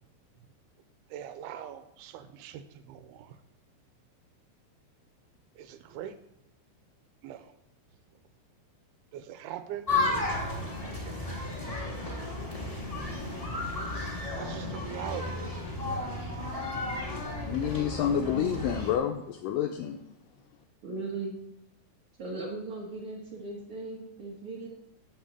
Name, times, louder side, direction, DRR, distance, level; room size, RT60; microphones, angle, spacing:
voice 1, 1.1-3.4 5.6-6.1 7.2-7.5 9.1-9.9 11.0-11.5 14.3-15.6, right 10 dB, 85° right, 2.6 m, -42 dB
sound 1, 9.9-18.9, left 2 dB, 30° left, 0.6 m, -33 dB
voice 2, 17.5-20.0, left 9 dB, 85° left, 1.9 m, -29 dB
voice 3, 18.0-18.5 20.8-21.4 22.2-24.7, right 3 dB, 55° right, 1.5 m, -38 dB
8.8 x 5.6 x 7.4 m
omnidirectional pair, 4.5 m